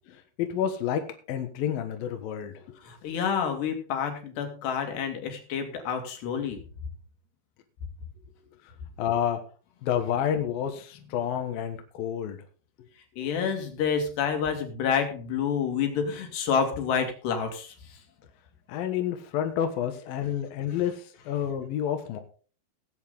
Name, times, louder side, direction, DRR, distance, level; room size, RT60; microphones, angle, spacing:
voice 1, 0.1-2.8 8.6-8.7 9.0-9.4 9.8-12.4 13.2-13.3 18.7-22.2, left 9 dB, 70° left, 6 dB, 3.0 m, -29 dB
voice 2, 2.8-6.6 13.2-18.0, left 7 dB, 85° left, 5 dB, 4.4 m, -28 dB
19.0 x 8.2 x 3.8 m, 0.38 s
omnidirectional pair, 4.7 m